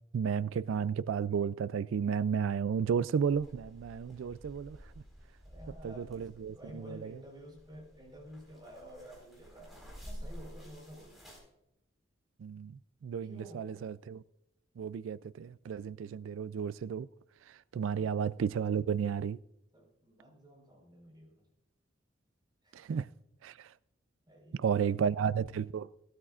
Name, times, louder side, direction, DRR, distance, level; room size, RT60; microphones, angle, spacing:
voice 1, 0.1-4.8 5.8-7.2 12.4-14.2 14.8-17.1 17.7-19.4 22.7-23.1 23.4-23.7 24.6-25.9, right 7 dB, 80° right, 0.3 m, -33 dB
sound 1, 3.2-11.4, equal, ahead, 4.4 m, -51 dB
voice 2, 5.4-9.8 10.0-11.4 13.2-13.9 17.9-18.2 19.7-21.5 22.6-22.8 24.3-25.1, equal, 20° right, 4.5 m, -51 dB
17.5 x 13.0 x 2.4 m
head